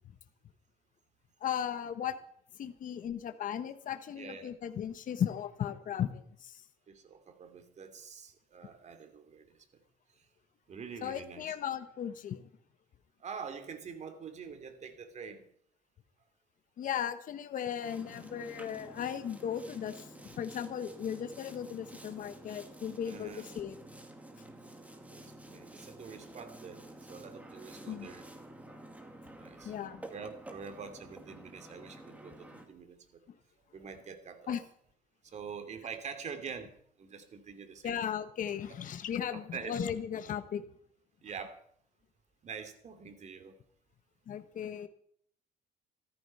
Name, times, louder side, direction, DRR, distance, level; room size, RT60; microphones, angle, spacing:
voice 1, 1.4-2.1 2.6-6.6 11.0-12.4 16.8-23.8 27.9-28.1 29.6-30.0 34.5-34.6 37.8-40.6 44.3-44.9, left 9 dB, 50° left, 10 dB, 1.3 m, -36 dB
voice 2, 4.2-4.6 6.9-9.5 10.7-11.5 13.2-15.4 23.0-23.4 25.1-25.2 25.5-28.3 29.4-29.7 30.1-33.2 33.7-34.6 35.3-36.7 37.0-38.0 38.7-38.8 39.5-39.7 41.2-41.6 42.4-43.5, right 6 dB, 45° right, 7 dB, 2.9 m, -45 dB
Boat Water vehicle, 17.8-32.7, right 1 dB, 10° right, 2.5 m, -50 dB
14.0 x 14.0 x 5.6 m, 0.64 s
cardioid pair, 110°, 17 cm